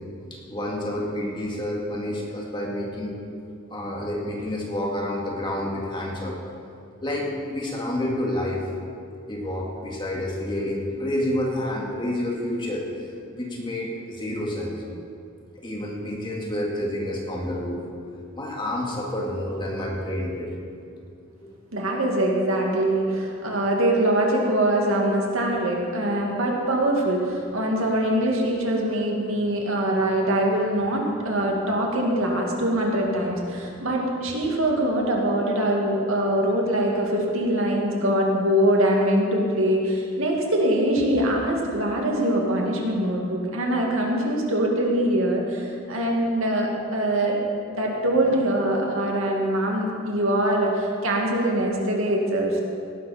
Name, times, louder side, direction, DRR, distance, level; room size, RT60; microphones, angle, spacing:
voice 1, 0.3-3.2 3.7-6.4 7.0-8.6 9.3-12.9 13.3-14.8 15.6-17.8 18.4-20.6 21.4-21.5 31.3-31.6 31.9-32.0 34.4-34.5, left 1 dB, 20° left, -2 dB, 2.2 m, -29 dB
voice 2, 21.7-47.4 47.7-52.6, right 1 dB, 75° right, -1 dB, 2.3 m, -23 dB
18.0 x 11.0 x 4.4 m, 2.4 s
head